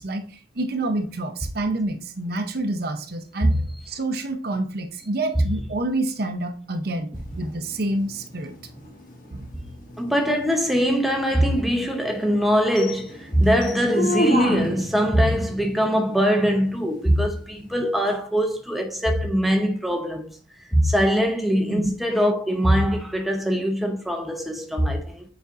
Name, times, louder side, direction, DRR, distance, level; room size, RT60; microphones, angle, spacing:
voice 1, 0.0-3.6 3.9-8.6 9.3-9.5 17.8-17.9 21.7-21.9, right 2 dB, 50° right, 0.7 m, -28 dB
sound 1, 7.1-15.0 18.1-18.2, equal, 45° left, 1.3 m, -31 dB
voice 2, 10.0-20.4 20.7-25.2, equal, ahead, 0.8 m, -22 dB
8.1 x 5.1 x 2.5 m
head